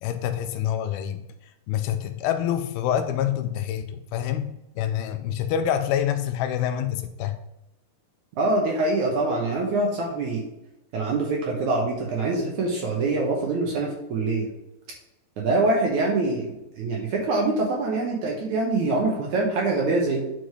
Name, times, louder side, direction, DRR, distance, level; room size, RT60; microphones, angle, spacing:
voice 1, 0.0-1.3 1.7-7.4, left 10 dB, 80° left, 9 dB, 2.4 m, -26 dB
voice 2, 8.4-10.4 10.9-14.5 15.4-20.2, right 2 dB, 65° right, -1 dB, 2.2 m, -24 dB
9.6 x 6.3 x 3.2 m, 0.93 s
omnidirectional pair, 4.5 m